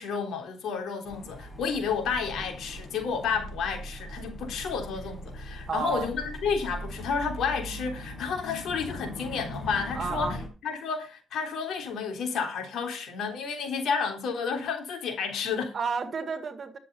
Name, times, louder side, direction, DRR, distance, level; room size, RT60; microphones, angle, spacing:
voice 1, 0.0-10.4 10.6-15.8, left 5 dB, 70° left, 3.4 m, -31 dB
sound 1, 1.0-10.5, equal, 15° left, 5.4 m, -40 dB
voice 2, 5.7-6.1 9.9-10.4 15.7-16.8, right 5 dB, 45° right, 2.0 m, -31 dB
11.0 x 7.4 x 5.5 m
cardioid pair, 90°, 0 cm